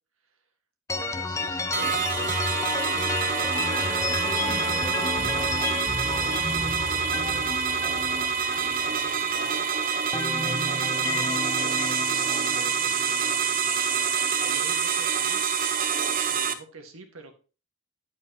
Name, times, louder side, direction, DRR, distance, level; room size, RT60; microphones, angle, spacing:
sound 1, 0.9-9.6 9.9-14.0, left 3 dB, 15° left, 0.6 m, -32 dB
voice 1, 0.9-2.4 2.9-5.6 6.2-7.5 8.5-9.7 10.2-13.1 14.4-15.4 16.3-17.4, right 3 dB, 80° right, 5 dB, 1.9 m, -45 dB
sound 2, 1.7-16.5, right 6 dB, 45° right, 0.8 m, -26 dB
9.7 x 8.3 x 3.1 m, 0.34 s
head